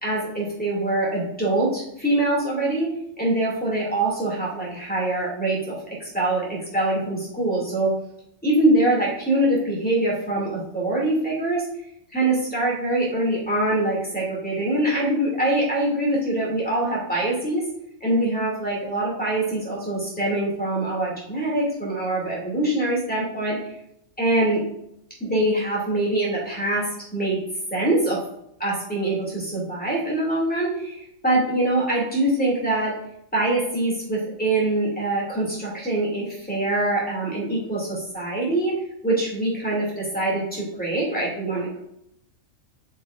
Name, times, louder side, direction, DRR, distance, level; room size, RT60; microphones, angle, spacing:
voice 1, 0.0-2.9 3.2-7.9 8.4-11.6 12.1-17.6 18.0-23.7 24.2-24.6 25.2-27.4 27.7-28.2 28.6-32.9 33.3-38.8 39.0-41.8, right 1 dB, 5° left, -5 dB, 2.2 m, -24 dB
7.9 x 5.5 x 2.4 m, 0.77 s
omnidirectional pair, 1.4 m